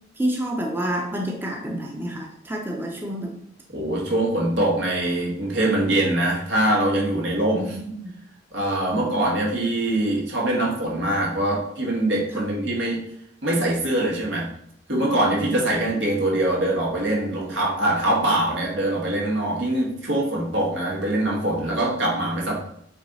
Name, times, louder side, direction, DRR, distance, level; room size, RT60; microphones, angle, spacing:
voice 1, 0.2-3.4 7.5-8.1 8.9-9.1, right 1 dB, 10° right, 0 dB, 0.7 m, -29 dB
voice 2, 3.7-7.8 8.5-13.0 13.4-14.5 14.9-22.6, right 1 dB, 80° right, -3 dB, 2.1 m, -23 dB
8.0 x 3.2 x 4.1 m, 0.71 s
head